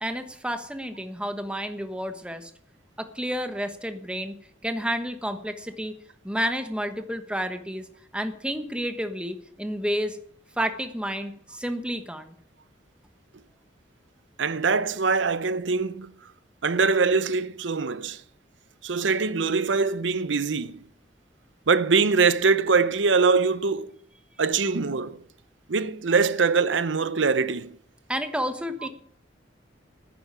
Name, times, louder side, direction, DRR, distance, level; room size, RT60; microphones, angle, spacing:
voice 1, 0.0-2.5 3.0-4.4 4.6-5.9 6.2-7.8 8.1-10.2 10.6-12.3 28.1-28.9, equal, 5° right, 1.2 m, -30 dB
voice 2, 14.4-16.1 16.6-18.2 18.8-20.8 21.7-23.9 24.4-25.2 25.7-27.8 28.8-28.9, right 4 dB, 75° right, 0.7 m, -23 dB
10.5 x 9.9 x 8.3 m
head